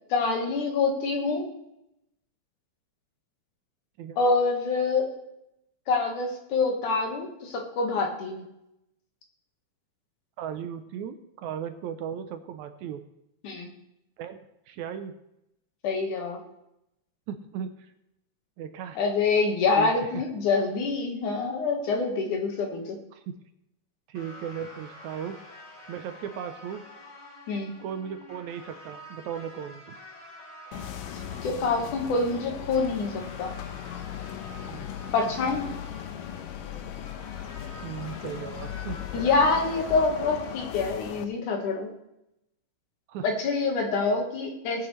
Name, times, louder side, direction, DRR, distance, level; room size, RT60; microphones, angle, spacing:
voice 1, 0.1-1.5 4.2-5.1 5.9-8.4 13.4-13.7 15.8-16.4 19.0-23.0 27.5-27.7 31.4-33.6 35.1-35.7 39.1-41.9 43.2-44.9, left 4 dB, 70° left, 2 dB, 3.0 m, -26 dB
voice 2, 10.4-13.0 14.2-15.2 17.3-17.9 18.6-19.0 19.8-20.2 23.1-23.4 24.1-25.4 25.9-26.9 27.8-30.0 34.6-34.9 37.8-39.0 43.1-43.3, right 8 dB, 75° right, 8 dB, 1.9 m, -37 dB
sound 1, 24.1-40.9, equal, 30° left, 4.3 m, -48 dB
sound 2, 30.7-41.3, left 11 dB, 85° left, 2.3 m, -38 dB
19.0 x 8.9 x 3.2 m, 0.84 s
omnidirectional pair, 3.9 m